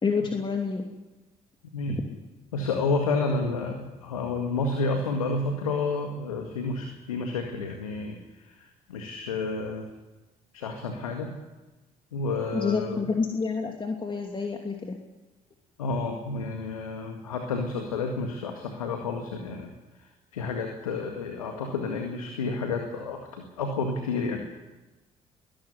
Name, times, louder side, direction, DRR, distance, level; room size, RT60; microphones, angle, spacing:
voice 1, 0.0-0.8 1.9-2.0 12.5-15.0, left 5 dB, 30° left, 2 dB, 2.9 m, -28 dB
voice 2, 2.5-9.9 10.5-11.3 12.1-13.0 15.8-19.7 20.0-24.5, left 3 dB, 85° left, 4 dB, 1.9 m, -30 dB
22.0 x 14.0 x 9.7 m, 1.1 s
figure-of-eight pair, 50°, 18 cm